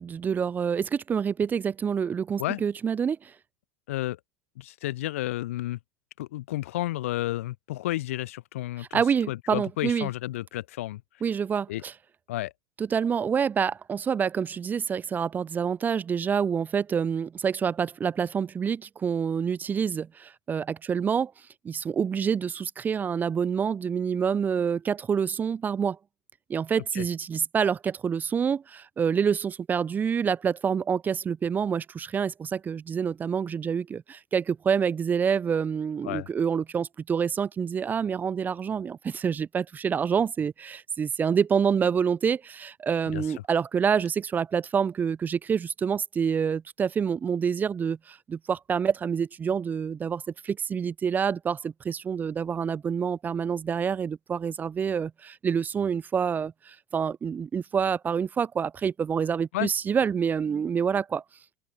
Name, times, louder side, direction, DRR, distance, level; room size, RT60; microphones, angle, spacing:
voice 1, 0.0-3.3 8.8-10.1 11.2-11.9 12.8-21.3 21.6-26.0 26.5-61.2, right 7 dB, 20° right, 0.5 m, -27 dB
voice 2, 3.9-4.2 4.6-5.8 6.2-11.0 11.7-11.8 12.3-12.5 26.9-27.1 36.0-36.3 43.1-43.2 59.5-59.7, left 16 dB, 65° left, 0.5 m, -31 dB
open air
figure-of-eight pair, 80°, 8 cm